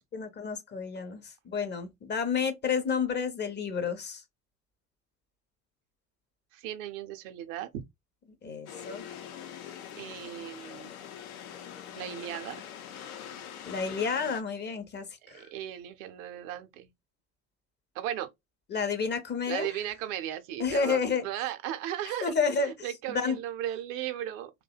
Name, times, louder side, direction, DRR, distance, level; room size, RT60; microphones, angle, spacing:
voice 1, 0.1-4.2 8.4-9.2 13.7-15.5 18.7-19.7 20.6-21.2 22.2-22.7 23.1-23.4, left 5 dB, 25° left, 0.6 m, -30 dB
voice 2, 6.5-7.8 9.9-10.9 12.0-12.6 12.9-13.1 15.2-16.9 17.9-18.3 19.5-22.3 22.6-24.5, right 12 dB, 65° right, 0.6 m, -36 dB
sound 1, 8.7-14.4, left 9 dB, 75° left, 0.6 m, -43 dB
2.6 x 2.1 x 2.2 m
figure-of-eight pair, 65°, 43 cm